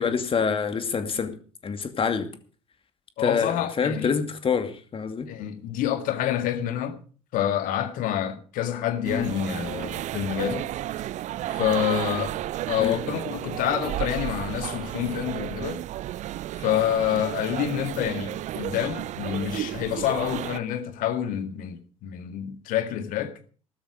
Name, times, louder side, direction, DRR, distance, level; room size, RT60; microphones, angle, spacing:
voice 1, 0.0-1.3 1.6-2.3 3.2-5.3 9.0-9.3 12.8-13.0, left 6 dB, 35° left, 2.4 m, -26 dB
voice 2, 3.2-4.2 5.3-7.0 7.3-10.7 11.5-12.3 12.7-15.8 16.5-23.3, left 10 dB, 55° left, 2.1 m, -27 dB
sound 1, 9.0-20.6, right 13 dB, 45° right, 0.6 m, -32 dB
14.5 x 12.5 x 5.1 m
hypercardioid pair, 60°, 16 cm